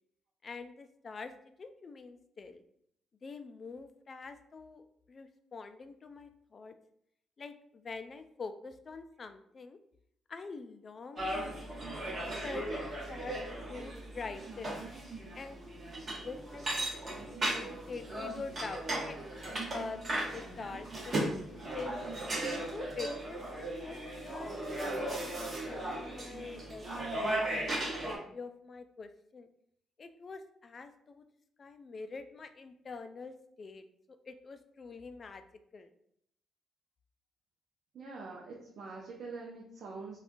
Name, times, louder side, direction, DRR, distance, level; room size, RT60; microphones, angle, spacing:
voice 1, 0.4-1.3 1.6-2.6 3.2-6.8 7.4-9.8 10.3-11.9 12.4-13.4 13.7-14.7 15.3-15.6 16.2-19.2 19.7-22.0 22.7-29.5 30.0-31.2 31.6-33.8 34.3-35.4 35.7-35.9, left 4 dB, 40° left, 9 dB, 0.3 m, -45 dB
sound 1, 11.2-28.2, right 1 dB, 40° right, 1.1 m, -37 dB
voice 2, 37.9-40.2, right 4 dB, 60° right, -3 dB, 0.6 m, -44 dB
3.6 x 2.3 x 2.5 m, 0.70 s
cardioid pair, 90°, 0 cm